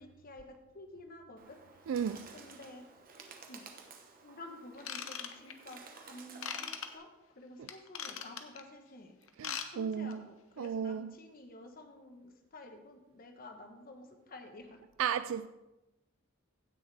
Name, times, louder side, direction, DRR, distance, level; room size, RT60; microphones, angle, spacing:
voice 1, 0.0-1.6 2.3-2.9 3.5-3.6 4.2-9.2 9.7-14.8, left 2 dB, 45° left, 1.1 m, -51 dB
Bird, 1.4-7.0, right 4 dB, 45° right, 1.1 m, -54 dB
voice 2, 1.9-2.2 9.4-10.3 10.6-11.1 15.0-15.5, right 7 dB, 70° right, 0.3 m, -34 dB
Ratchet pawl / Tools, 4.8-5.7 6.4-6.9 7.7-8.6 9.3-9.7 9.9-10.1 10.6-10.7, left 8 dB, 80° left, 0.9 m, -39 dB
16.5 x 6.4 x 3.4 m
head